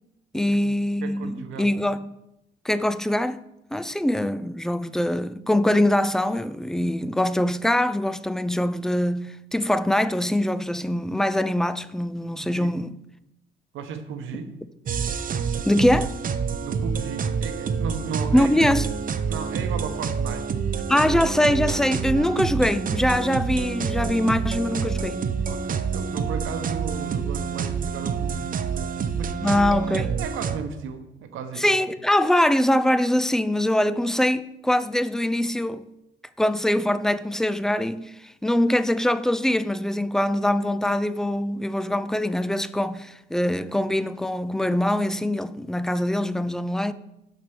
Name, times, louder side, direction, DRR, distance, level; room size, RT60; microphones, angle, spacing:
voice 1, 0.3-2.1 2.6-3.4 3.7-12.9 15.7-16.2 18.3-18.9 19.1-19.2 20.9-25.2 29.4-30.1 31.6-35.8 36.4-46.9, left 1 dB, ahead, 0.4 m, -23 dB
voice 2, 1.0-1.7 12.4-12.7 13.7-14.5 16.6-18.7 19.3-20.5 25.5-29.3 30.0-31.8, right 6 dB, 80° right, 1.1 m, -35 dB
sound 1, 14.9-30.6, right 6 dB, 45° right, 0.6 m, -27 dB
6.7 x 5.1 x 6.1 m
cardioid pair, 90°, 20 cm